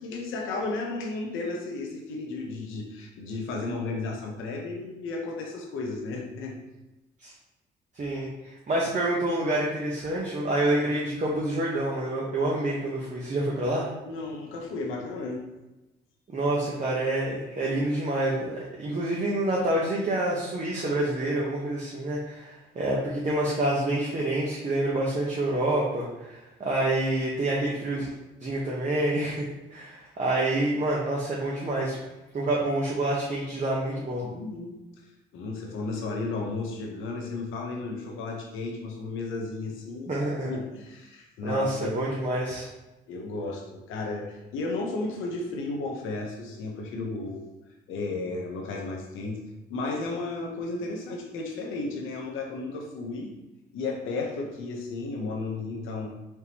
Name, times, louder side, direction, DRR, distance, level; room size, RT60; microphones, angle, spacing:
voice 1, 0.0-6.6 14.0-15.4 34.2-34.8 35.3-40.1 40.4-42.0 43.1-47.4 47.9-49.4 49.7-53.3 53.7-56.1, left 3 dB, 85° left, 1 dB, 0.8 m, -33 dB
voice 2, 7.9-13.9 16.3-28.1 28.4-32.0 32.3-34.2 40.1-40.5 41.4-42.7, right 1 dB, 35° right, -4 dB, 0.9 m, -27 dB
4.5 x 3.4 x 2.9 m, 1.0 s
cardioid pair, 90°, 20 cm